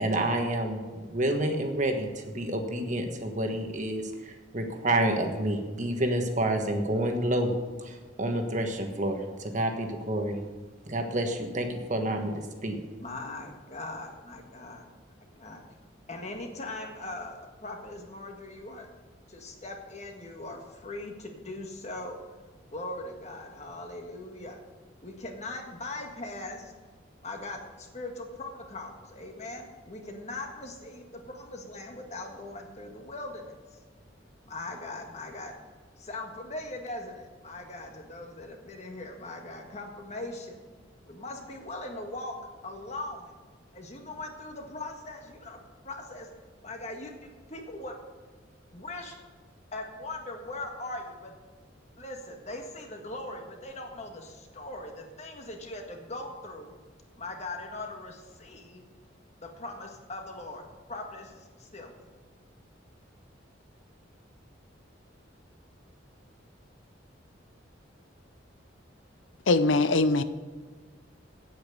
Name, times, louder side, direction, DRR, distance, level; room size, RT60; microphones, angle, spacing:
voice 1, 0.0-7.5 7.8-10.4 10.9-12.3 12.6-12.8, right 1 dB, 40° right, 4 dB, 1.4 m, -29 dB
voice 2, 13.0-14.9 15.4-15.6 16.1-18.9 19.3-22.2 22.7-24.6 25.0-26.7 27.2-33.5 34.5-35.5 36.0-40.6 41.1-42.3 42.6-43.3 43.7-46.3 46.6-47.1 47.5-48.0 48.7-49.2 49.7-51.3 52.0-56.7 57.2-58.8 59.4-61.9, left 2 dB, 35° left, 2 dB, 1.6 m, -40 dB
voice 3, 69.5-70.2, left 3 dB, 80° left, 12 dB, 0.7 m, -22 dB
9.0 x 8.4 x 6.7 m, 1.4 s
head